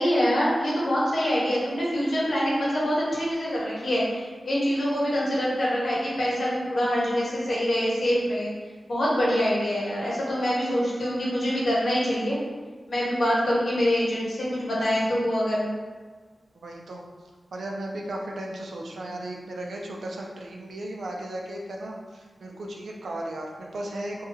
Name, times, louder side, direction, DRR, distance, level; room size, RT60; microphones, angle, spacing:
voice 1, 0.0-8.5 8.9-12.4 12.9-15.6, equal, 65° left, -6 dB, 0.9 m, -25 dB
voice 2, 16.5-17.0 17.5-24.2, right 1 dB, 85° right, -1 dB, 0.4 m, -35 dB
2.7 x 2.3 x 2.7 m, 1.4 s
wide cardioid pair, 100°, 0 cm